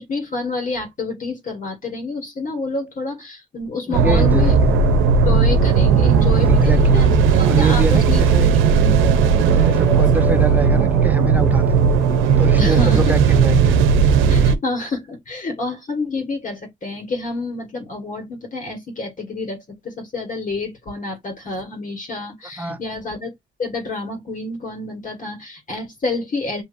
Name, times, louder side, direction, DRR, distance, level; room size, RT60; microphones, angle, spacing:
voice 1, 0.0-4.5 5.2-8.2 12.6-13.1 14.3-23.3 23.6-26.6, left 3 dB, 40° left, 1.6 m, -28 dB
voice 2, 3.9-4.8 6.5-8.5 9.5-11.8 12.4-13.8 22.6-22.8, right 2 dB, 10° right, 0.8 m, -25 dB
sound 1, 3.9-14.6, right 6 dB, 90° right, 0.6 m, -15 dB
sound 2, 4.1-13.0, left 1 dB, 15° left, 1.3 m, -35 dB
6.8 x 2.7 x 2.6 m
cardioid pair, 90°, 20 cm